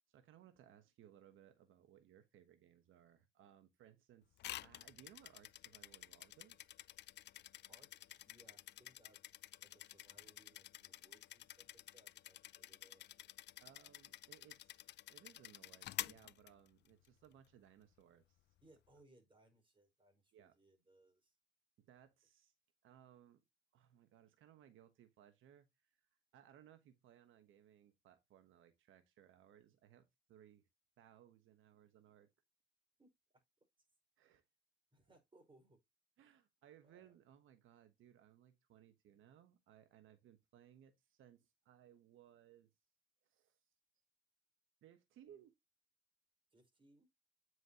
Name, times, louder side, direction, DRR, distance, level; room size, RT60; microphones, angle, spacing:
voice 1, 0.1-6.6 13.6-18.5 20.3-20.6 21.8-22.5 22.8-23.4 23.7-30.7 31.0-32.3 34.2-34.4 36.2-42.7 43.2-43.6 44.8-45.5, right 10 dB, 80° right, 1.2 m, -64 dB
sound 1, 4.4-17.1, left 14 dB, 60° left, 0.4 m, -51 dB
voice 2, 7.7-9.2 9.7-13.1 18.6-21.3 33.0-33.1 34.9-35.8 36.8-37.1 46.5-47.1, right 2 dB, 25° right, 5.2 m, -69 dB
9.3 x 6.2 x 2.9 m
cardioid pair, 90°, 20 cm